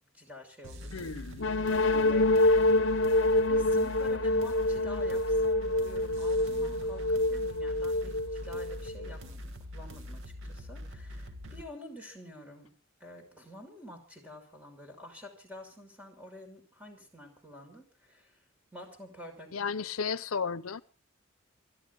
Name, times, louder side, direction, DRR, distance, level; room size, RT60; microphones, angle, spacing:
voice 1, 0.1-1.1 1.9-2.3 3.5-12.7 13.0-18.4 18.7-19.7, left 1 dB, 5° right, 5.6 m, -48 dB
sound 1, 0.6-11.6, left 1 dB, 70° right, 1.9 m, -43 dB
voice 2, 0.9-1.5 19.5-20.8, left 5 dB, 85° left, 0.7 m, -34 dB
sound 2, 1.4-9.1, left 2 dB, 60° left, 0.9 m, -26 dB
28.5 x 12.0 x 3.8 m
head